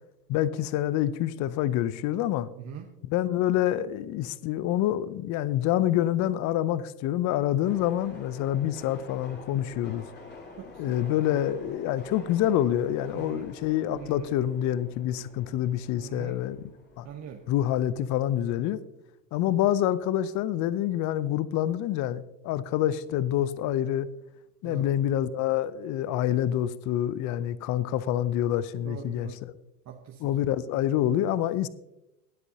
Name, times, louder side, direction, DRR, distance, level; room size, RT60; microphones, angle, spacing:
voice 1, 0.3-2.5 3.1-10.0 10.8-16.6 17.0-17.1 17.5-18.8 19.3-24.1 24.6-29.3 30.2-31.7, left 12 dB, 40° left, 0.6 m, -27 dB
sound 1, 7.6-18.2, left 3 dB, 20° left, 2.3 m, -48 dB
voice 2, 10.5-11.2 13.1-13.5 13.9-14.3 15.9-16.4 17.0-17.4 24.6-24.9 28.8-29.4 29.8-30.4, right 9 dB, 35° right, 1.1 m, -42 dB
20.0 x 8.1 x 2.8 m
hypercardioid pair, 90°, 48 cm